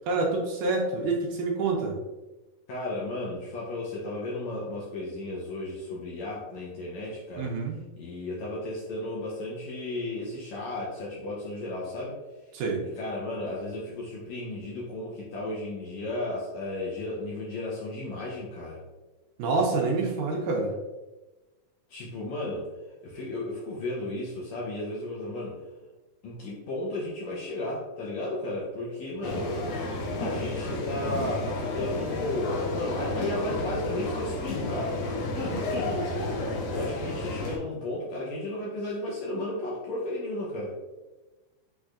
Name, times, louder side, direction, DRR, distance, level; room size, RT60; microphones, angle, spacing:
voice 1, 0.1-2.0 7.4-7.8 12.5-12.8 19.4-20.7, right 3 dB, 75° right, 0 dB, 2.0 m, -27 dB
voice 2, 2.7-7.5 8.0-12.2 13.0-18.8 21.9-22.7 23.0-25.6 26.2-29.6 30.2-34.9 35.3-36.0 36.7-40.7, left 2 dB, 75° left, -5 dB, 1.7 m, -34 dB
sound 1, 29.2-37.6, left 2 dB, 90° left, 2.6 m, -31 dB
6.2 x 3.3 x 2.4 m, 1.1 s
omnidirectional pair, 3.9 m